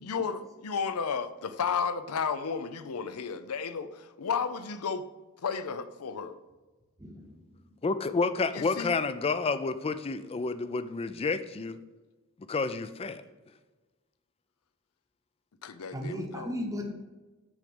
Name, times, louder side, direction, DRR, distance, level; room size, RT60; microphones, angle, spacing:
voice 1, 0.0-5.0 5.4-6.4 8.5-8.9 15.6-16.6, left 6 dB, 85° left, 0.6 m, -33 dB
voice 2, 7.0-7.4 15.9-16.9, left 1 dB, 15° right, 0.8 m, -35 dB
voice 3, 7.8-11.8 12.5-13.2, left 4 dB, 25° left, 0.4 m, -30 dB
6.2 x 5.0 x 6.0 m
head